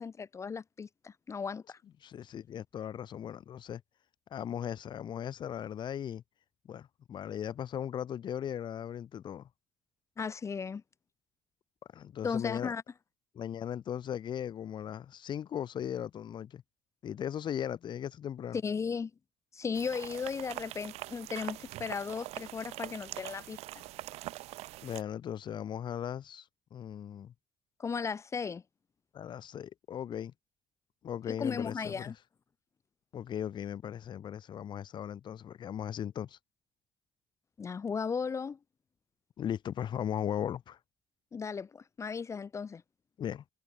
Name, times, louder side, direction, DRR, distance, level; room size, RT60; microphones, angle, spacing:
voice 1, 0.0-1.8 10.2-10.8 12.2-12.8 18.5-19.1 19.5-23.8 27.8-28.6 31.3-32.1 37.6-38.6 41.3-42.8, left 5 dB, 25° left, 1.1 m, -36 dB
voice 2, 2.0-3.8 4.3-6.2 6.7-9.5 11.9-12.7 13.3-16.6 17.0-18.6 24.8-26.5 26.7-27.3 29.1-30.3 31.0-32.1 33.1-36.4 39.4-40.8 43.2-43.4, left 9 dB, 45° left, 1.9 m, -37 dB
sound 1, 19.7-25.0, right 18 dB, 80° right, 4.7 m, -43 dB
cardioid pair, 125°, 11 cm